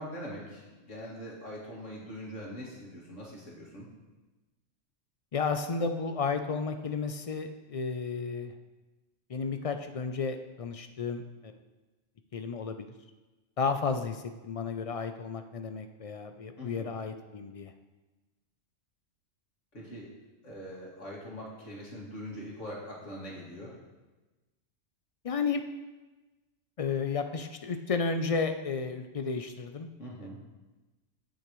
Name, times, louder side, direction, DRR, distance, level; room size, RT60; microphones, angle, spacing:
voice 1, 0.0-3.9 16.6-16.9 19.7-20.1 20.4-23.8 30.0-30.4, equal, 80° left, -4 dB, 2.5 m, -42 dB
voice 2, 5.3-8.5 9.3-11.5 12.3-12.9 13.6-17.7 25.2-25.6 26.8-29.9, left 5 dB, 60° left, 8 dB, 0.3 m, -32 dB
15.0 x 6.4 x 3.1 m, 1.2 s
omnidirectional pair, 1.2 m